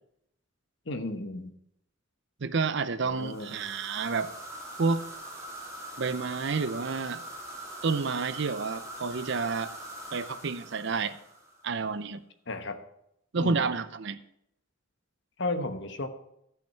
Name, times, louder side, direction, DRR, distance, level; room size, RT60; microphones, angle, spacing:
voice 1, 0.9-1.5 3.0-3.6 12.5-12.8 13.4-13.6 15.4-16.1, left 2 dB, 60° left, 8 dB, 1.0 m, -33 dB
voice 2, 2.4-4.3 4.8-5.0 6.0-7.3 7.8-9.7 10.1-11.2 11.6-12.2 13.3-14.2, right 4 dB, 60° right, 13 dB, 0.6 m, -29 dB
sound 1, 3.2-11.7, right 1 dB, 15° right, 2.9 m, -43 dB
13.5 x 5.8 x 5.9 m, 0.76 s
head